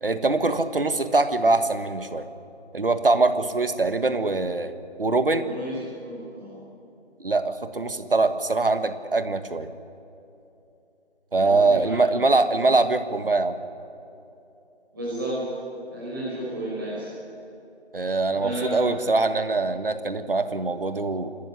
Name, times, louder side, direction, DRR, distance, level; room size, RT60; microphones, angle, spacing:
voice 1, 0.0-2.3 2.7-5.5 7.2-9.7 11.3-13.6 17.9-21.3, right 3 dB, 55° right, 10 dB, 1.5 m, -23 dB
voice 2, 5.5-6.5 11.4-12.3 14.9-15.4 15.9-17.1 18.4-18.8, right 1 dB, 20° right, -8 dB, 5.5 m, -32 dB
27.5 x 13.0 x 9.9 m, 2.8 s
figure-of-eight pair, 170°, 33 cm